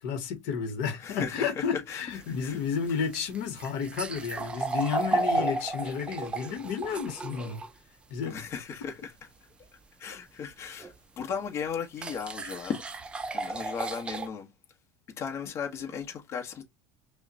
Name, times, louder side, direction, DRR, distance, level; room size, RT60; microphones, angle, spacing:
voice 1, 0.0-7.6 8.1-8.4, left 6 dB, 70° left, 1.1 m, -32 dB
voice 2, 1.0-2.6 8.2-9.1 9.6-9.7 10.0-12.8 13.3-14.5 15.2-16.6, left 7 dB, 35° left, 1.1 m, -36 dB
sound 1, 2.1-7.7 10.8-10.9 12.0-14.3, right 3 dB, 15° right, 0.4 m, -33 dB
5.5 x 2.2 x 2.7 m
supercardioid pair, 140°, 8 cm